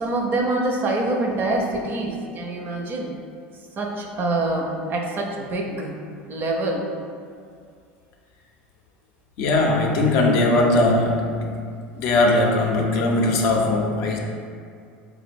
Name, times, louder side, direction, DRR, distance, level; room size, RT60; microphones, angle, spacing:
voice 1, 0.0-3.2 3.8-6.9, right 2 dB, 35° right, 2 dB, 0.5 m, -25 dB
voice 2, 9.4-11.4 11.9-14.2, left 2 dB, 60° left, 0 dB, 0.5 m, -19 dB
4.4 x 2.1 x 2.5 m, 2.3 s
hypercardioid pair, 80°, 6 cm